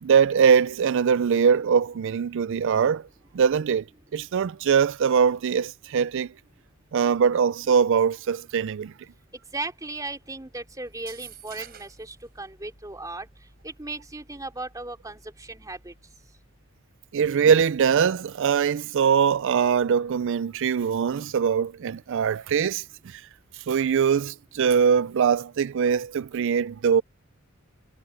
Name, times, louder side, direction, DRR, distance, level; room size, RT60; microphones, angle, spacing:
voice 1, 0.0-3.1 3.3-3.9 4.1-6.3 6.9-8.9 17.1-23.2 23.7-27.0, right 7 dB, 60° right, 0.4 m, -22 dB
voice 2, 9.5-13.3 13.6-15.9, right 2 dB, 15° right, 2.7 m, -36 dB
sound 1, 10.9-12.1, right 9 dB, 45° right, 5.5 m, -45 dB
head